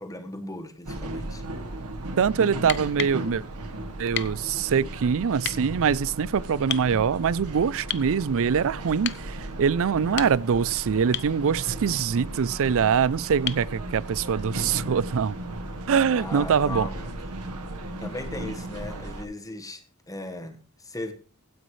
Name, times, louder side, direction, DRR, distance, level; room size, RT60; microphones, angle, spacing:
voice 1, 0.0-1.4 9.9-10.3 16.1-17.1 18.0-21.1, left 1 dB, 15° left, 1.4 m, -37 dB
sound 1, 0.8-19.2, right 1 dB, 90° right, 1.4 m, -36 dB
voice 2, 2.2-3.4 4.0-15.4 15.9-16.9, right 6 dB, 65° right, 0.4 m, -24 dB
sound 2, 2.6-3.2 4.1-4.4 5.4-5.6 6.7-6.9 7.9-8.1 9.0-9.3 10.0-10.6 11.1-11.4 13.5-13.7 15.5-15.6, left 10 dB, 55° left, 0.7 m, -32 dB
16.0 x 9.4 x 3.2 m
head